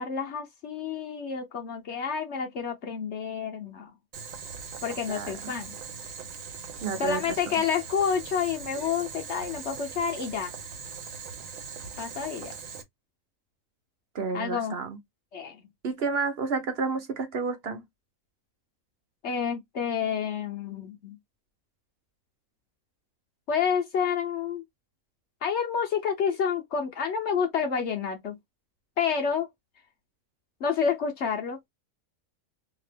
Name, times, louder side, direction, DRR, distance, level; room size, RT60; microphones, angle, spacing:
voice 1, 0.0-3.9 4.8-5.7 7.0-10.5 12.0-12.5 14.3-14.8 15.3-15.6 19.2-21.2 23.5-24.6 25.4-28.4 29.0-29.5 30.6-31.6, left 6 dB, 60° left, 0.9 m, -29 dB
Boiling, 4.1-12.8, right 6 dB, 75° right, 1.1 m, -40 dB
voice 2, 6.8-7.2 14.1-15.0 15.8-17.8, right 4 dB, 50° right, 0.9 m, -30 dB
2.8 x 2.4 x 3.3 m
omnidirectional pair, 1.4 m